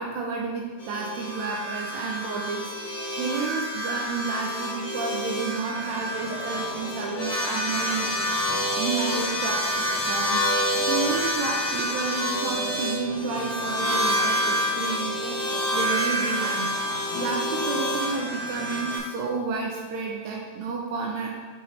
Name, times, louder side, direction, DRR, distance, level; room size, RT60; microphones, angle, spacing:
voice 1, 0.0-8.1 8.4-21.3, right 4 dB, 80° right, -1 dB, 1.7 m, -31 dB
sound 1, 0.8-19.0, equal, 50° left, 1.4 m, -28 dB
sound 2, 5.7-19.0, left 2 dB, 80° left, 1.0 m, -41 dB
5.8 x 5.6 x 3.1 m, 1.4 s
omnidirectional pair, 3.7 m